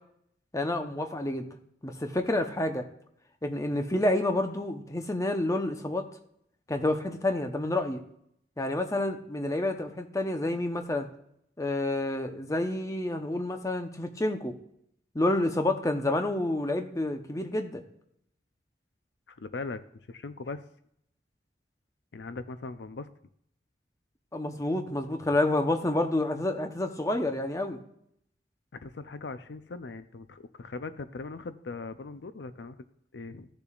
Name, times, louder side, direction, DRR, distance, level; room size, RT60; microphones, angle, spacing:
voice 1, 0.5-1.5 1.8-2.8 3.4-6.0 6.7-8.0 8.6-11.1 11.6-14.5 15.1-17.8 24.3-27.8, left 1 dB, 20° left, 5 dB, 0.8 m, -29 dB
voice 2, 19.3-19.8 20.1-20.6 22.1-23.1 28.8-32.8 33.1-33.5, left 3 dB, 75° left, 11 dB, 0.6 m, -39 dB
15.5 x 6.9 x 2.4 m, 0.72 s
head